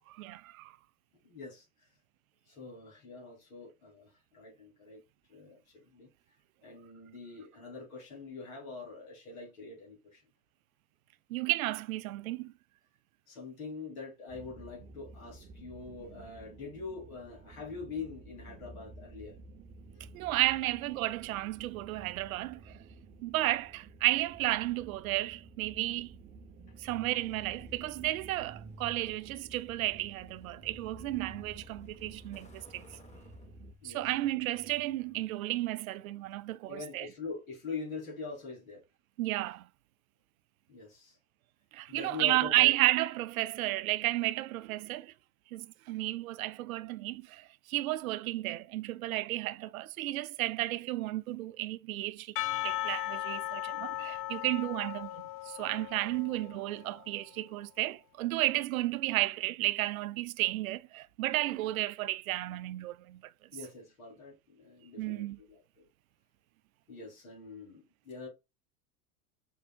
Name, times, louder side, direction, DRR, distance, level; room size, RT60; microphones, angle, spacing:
voice 1, 0.2-0.7 11.3-12.5 20.1-22.8 23.2-26.1 26.8-32.9 33.8-37.1 39.2-39.7 41.7-45.1 45.5-52.3 52.6-63.2 65.0-65.4, right 17 dB, 75° right, 0.5 m, -32 dB
voice 2, 1.2-1.9 2.5-5.0 5.3-6.1 6.6-10.2 13.3-19.4 33.8-34.1 36.7-38.8 40.7-41.2 41.9-42.7 63.5-65.8 66.9-68.3, left 4 dB, 75° left, 3.0 m, -44 dB
sound 1, 14.3-33.7, right 3 dB, 20° right, 0.6 m, -52 dB
Truck, 26.7-35.4, left 1 dB, 15° left, 1.2 m, -56 dB
Percussion / Church bell, 52.4-56.9, left 15 dB, 30° left, 0.5 m, -37 dB
5.4 x 3.5 x 2.3 m
hypercardioid pair, 100°, 42 cm